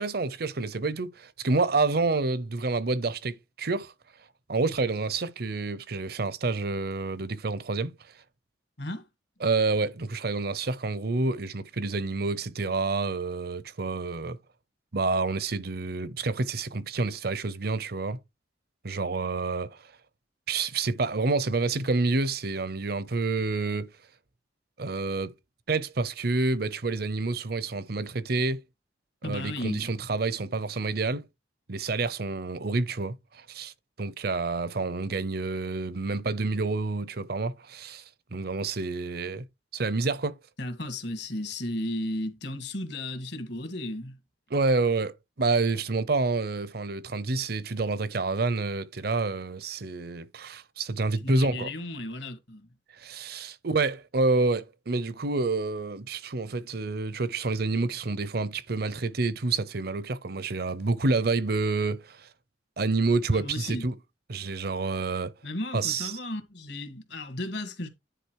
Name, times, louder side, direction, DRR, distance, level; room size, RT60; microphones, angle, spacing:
voice 1, 0.0-3.9 4.5-7.9 9.4-14.4 14.9-18.2 18.8-19.8 20.5-23.9 24.8-25.3 25.7-28.6 29.2-31.2 31.7-33.7 34.0-38.0 38.3-39.5 39.7-40.4 44.5-51.7 53.0-62.3 62.8-63.9 64.3-65.3 65.7-66.1, right 3 dB, 55° right, 0.7 m, -28 dB
voice 2, 29.2-29.9 40.6-44.2 51.2-52.7 63.3-63.8 65.4-67.9, left 1 dB, 65° left, 2.0 m, -34 dB
10.0 x 4.0 x 4.7 m
head